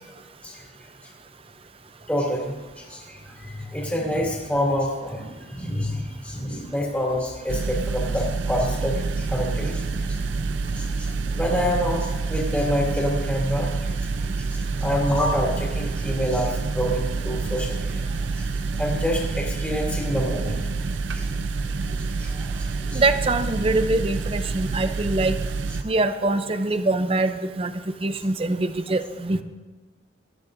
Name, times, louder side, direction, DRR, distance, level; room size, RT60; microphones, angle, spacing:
voice 1, 2.1-10.2 10.7-11.1 11.3-18.0 18.4-18.5 18.8-20.7 21.1-21.3 22.2-23.0, equal, 10° left, -3 dB, 2.8 m, -27 dB
sound 1, 7.5-25.8, right 3 dB, 75° right, 0.6 m, -27 dB
voice 2, 22.9-25.4 25.8-27.7 28.0-29.4, right 2 dB, 30° right, 10 dB, 0.6 m, -23 dB
19.0 x 13.5 x 2.6 m, 1.2 s
head